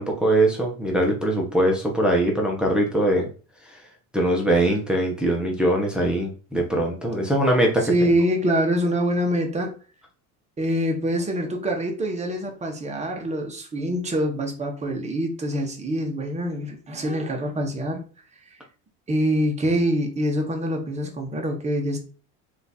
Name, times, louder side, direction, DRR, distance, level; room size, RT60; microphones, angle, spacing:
voice 1, 0.0-3.3 3.7-3.8 4.1-7.9, right 1 dB, ahead, 0.9 m, -22 dB
voice 2, 7.9-9.7 10.6-18.0 19.1-22.0, equal, 20° right, 1.2 m, -25 dB
3.5 x 3.2 x 4.1 m
cardioid pair, 130°, 35 cm